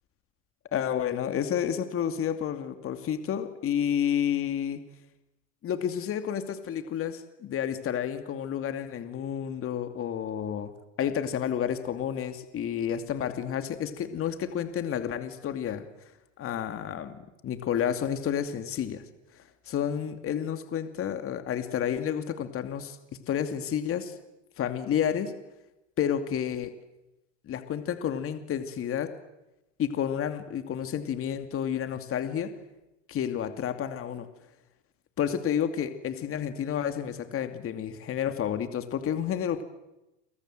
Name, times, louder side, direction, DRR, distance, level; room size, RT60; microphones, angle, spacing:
voice 1, 0.7-4.8 5.6-10.7 11.0-15.9 16.4-19.0 19.7-23.0 23.3-24.1 24.6-25.3 26.0-26.7 27.5-29.1 29.8-32.5 33.1-34.3 35.2-39.6, left 9 dB, 40° left, 8 dB, 2.6 m, -30 dB
28.5 x 25.5 x 7.8 m, 0.95 s
supercardioid pair, 110°, 36 cm